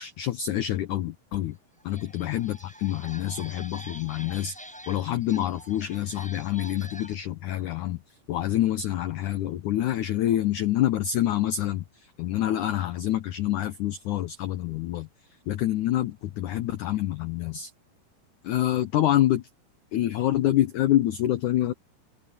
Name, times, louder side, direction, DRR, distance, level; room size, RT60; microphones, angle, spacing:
voice 1, 0.0-1.6 1.8-4.6 4.9-8.0 8.3-15.1 15.5-17.7 18.4-19.5 19.9-21.7, left 13 dB, 75° left, 1.9 m, -26 dB
sound 1, 1.3-1.4 1.8-7.1, equal, ahead, 7.5 m, -46 dB
open air
omnidirectional pair, 4.6 m